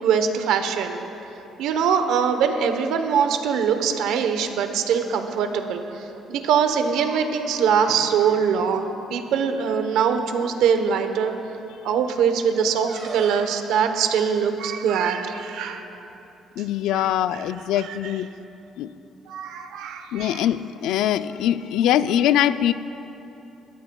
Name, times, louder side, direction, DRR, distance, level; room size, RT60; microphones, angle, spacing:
voice 1, 0.0-1.0 1.6-11.3 11.8-15.9 16.9-17.4 17.8-18.2 19.3-20.5, right 7 dB, 85° right, 7 dB, 0.9 m, -23 dB
sound 1, 5.3-5.4 6.7-7.6 7.8-8.0 8.4-8.6 9.6-9.7 10.3-10.6 12.9-13.6, right 3 dB, 65° right, 3.1 m, -40 dB
voice 2, 16.6-18.3 18.8-18.9 20.1-22.7, left 11 dB, 85° left, 14 dB, 0.3 m, -22 dB
22.5 x 13.0 x 2.3 m, 3.0 s
cardioid pair, 100°, 0 cm